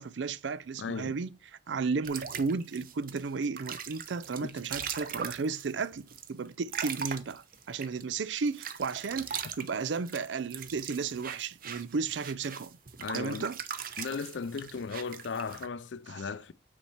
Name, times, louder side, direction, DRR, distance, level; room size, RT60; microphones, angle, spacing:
voice 1, 0.0-1.4 1.7-12.8 13.1-13.6, right 4 dB, 75° right, 0.5 m, -34 dB
voice 2, 0.8-1.2 4.5-4.6 13.0-13.4 14.0-16.5, left 5 dB, 75° left, 0.5 m, -36 dB
sound 1, 2.0-8.0 8.5-15.7, right 7 dB, 50° right, 0.8 m, -40 dB
8.7 x 4.3 x 4.5 m
head